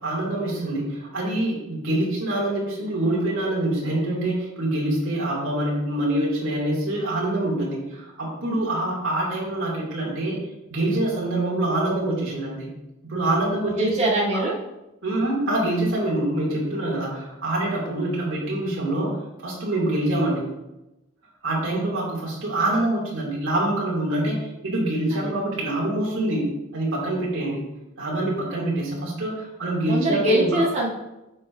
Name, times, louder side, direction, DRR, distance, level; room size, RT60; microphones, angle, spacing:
voice 1, 0.0-10.4 10.7-12.7 13.0-14.0 14.3-14.4 15.0-19.1 19.4-20.4 21.4-27.6 28.0-30.6, right 1 dB, 70° right, -5 dB, 2.5 m, -25 dB
voice 2, 13.7-14.5 25.1-25.3 29.9-30.9, right 1 dB, 30° right, -3 dB, 1.5 m, -22 dB
8.2 x 6.5 x 2.6 m, 0.95 s
head